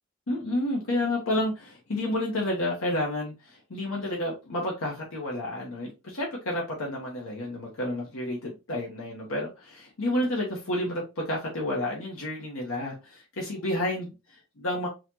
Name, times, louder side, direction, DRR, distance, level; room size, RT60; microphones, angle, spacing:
voice 1, 0.3-14.9, left 1 dB, 70° left, 0.9 m, -30 dB
4.0 x 2.9 x 2.7 m
head